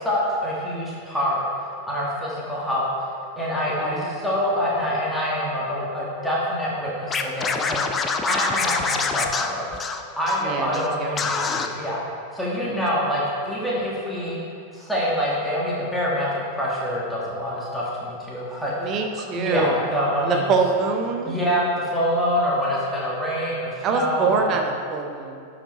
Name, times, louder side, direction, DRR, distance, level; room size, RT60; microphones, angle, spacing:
voice 1, 0.0-1.4 1.8-2.9 3.4-9.7 10.2-12.0 12.3-14.4 14.7-19.0 19.3-20.4 21.3-24.5, equal, ahead, -7 dB, 1.9 m, -26 dB
voice 2, 3.8-4.3 10.4-11.2 12.6-12.8 18.8-19.8 20.2-21.4 23.8-25.5, right 5 dB, 35° right, 3 dB, 0.9 m, -25 dB
Scratching (performance technique), 7.1-10.4 10.7-10.9 11.2-11.7, left 5 dB, 20° left, 0.5 m, -25 dB
11.5 x 5.2 x 4.2 m, 2.3 s
figure-of-eight pair, 90°, 0 cm